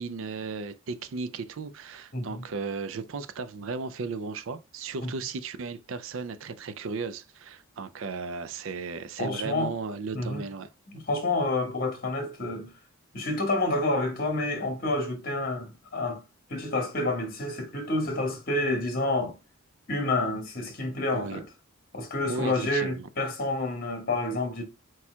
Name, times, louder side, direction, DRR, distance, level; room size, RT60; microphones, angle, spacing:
voice 1, 0.0-10.7 21.1-21.4 22.3-23.1, right 4 dB, 65° right, 0.4 m, -35 dB
voice 2, 2.1-2.4 5.0-5.1 9.2-9.7 10.1-10.4 10.9-12.7 13.1-16.2 16.5-19.4 19.9-21.4 21.9-24.6, left 2 dB, 45° left, 1.7 m, -29 dB
4.7 x 4.3 x 2.2 m
head